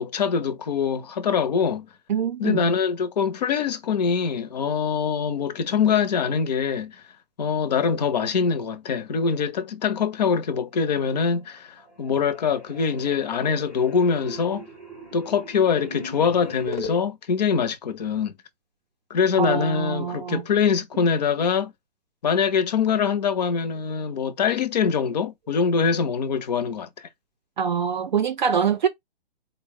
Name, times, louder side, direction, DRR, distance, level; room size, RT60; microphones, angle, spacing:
voice 1, 0.0-1.9 2.4-7.0 7.4-14.7 15.1-18.3 19.1-21.7 22.2-27.1, left 6 dB, 40° left, 0.7 m, -24 dB
voice 2, 2.1-2.7 19.4-20.4 27.6-28.9, right 7 dB, 45° right, 0.5 m, -24 dB
sound 1, 11.4-11.5 11.8-16.9, left 1 dB, ahead, 0.6 m, -39 dB
4.1 x 2.1 x 3.5 m
hypercardioid pair, 165°, 31 cm